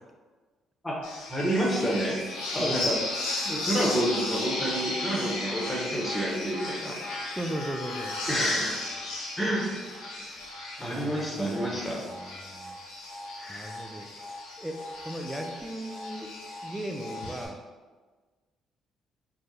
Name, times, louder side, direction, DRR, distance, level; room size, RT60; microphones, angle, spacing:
sound 1, 1.0-17.5, left 2 dB, 80° left, 0.7 m, -35 dB
voice 1, 1.3-2.2 2.5-2.9 3.4-6.9 8.3-8.8 9.4-9.8 10.8-12.0 13.4-13.7, right 1 dB, 20° left, -4 dB, 1.2 m, -29 dB
voice 2, 2.6-2.9 7.3-8.2 10.8-12.8 13.5-14.1 14.6-14.8 15.0-16.3 16.6-17.6, right 1 dB, 10° right, 4 dB, 0.5 m, -37 dB
2.6 x 2.4 x 3.8 m, 1.4 s
hypercardioid pair, 50°, 0 cm